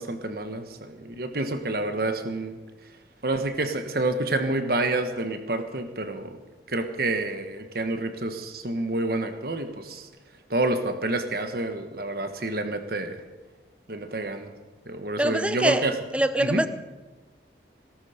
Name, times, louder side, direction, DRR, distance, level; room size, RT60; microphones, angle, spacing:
voice 1, 0.0-2.6 3.2-6.4 6.7-10.1 10.5-13.2 13.9-14.5 14.9-15.9 16.4-16.6, right 2 dB, 55° right, 1.4 m, -28 dB
voice 2, 15.2-15.9 16.1-16.7, right 1 dB, 5° right, 0.5 m, -23 dB
18.0 x 13.0 x 5.1 m
head